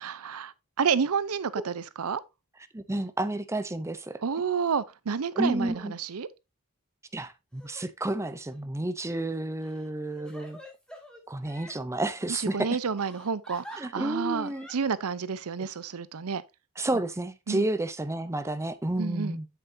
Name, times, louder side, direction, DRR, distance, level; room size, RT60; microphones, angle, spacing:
voice 1, 0.0-2.2 4.2-6.3 12.3-16.4 17.5-17.7 19.0-19.4, right 6 dB, 75° right, 0.6 m, -30 dB
voice 2, 2.7-4.2 5.4-5.9 7.1-10.6 11.3-12.7 13.8-14.7 16.8-19.5, right 1 dB, 15° right, 0.6 m, -31 dB
Crying sobbing, 7.5-7.8 8.5-8.6 9.6-11.8 13.0-13.8 14.4-14.7, equal, 5° left, 2.1 m, -47 dB
8.0 x 7.4 x 2.7 m
head